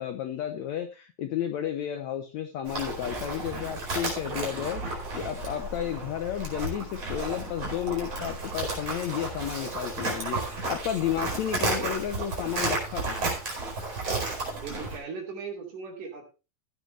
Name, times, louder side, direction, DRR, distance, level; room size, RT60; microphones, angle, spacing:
voice 1, 0.0-13.3, left 10 dB, 75° left, 7 dB, 1.7 m, -32 dB
Livestock farm animals working animals, 2.6-15.0, right 3 dB, 45° right, 6.0 m, -33 dB
voice 2, 14.6-16.3, right 5 dB, 65° right, 2 dB, 4.2 m, -38 dB
14.5 x 9.4 x 3.3 m, 0.30 s
omnidirectional pair, 4.0 m